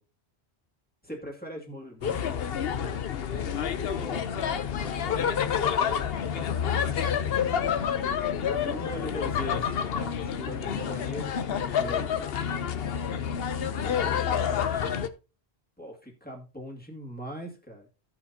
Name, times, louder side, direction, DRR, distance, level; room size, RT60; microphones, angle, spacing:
voice 1, 1.0-2.4 3.9-4.1 8.6-12.2 15.8-17.9, equal, 10° left, -1 dB, 2.0 m, -40 dB
sound 1, 2.0-15.1, left 8 dB, 65° left, 0.9 m, -28 dB
voice 2, 3.3-7.7 13.6-14.7, right 4 dB, 40° right, 5 dB, 0.8 m, -45 dB
16.0 x 5.9 x 2.7 m, 0.30 s
omnidirectional pair, 1.1 m